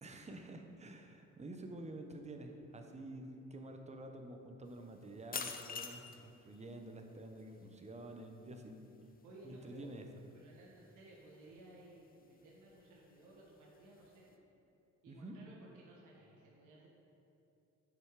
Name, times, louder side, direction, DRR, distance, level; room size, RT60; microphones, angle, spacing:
voice 1, 0.0-8.8 9.4-10.1 15.1-15.4, right 1 dB, 20° right, 4 dB, 0.8 m, -49 dB
sound 1, 4.7-14.4, left 5 dB, 30° left, 0.6 m, -51 dB
voice 2, 9.2-9.9 10.3-14.3 15.0-16.9, right 1 dB, 90° right, -5 dB, 1.5 m, -58 dB
7.8 x 5.6 x 4.8 m, 2.8 s
cardioid pair, 90°, 30 cm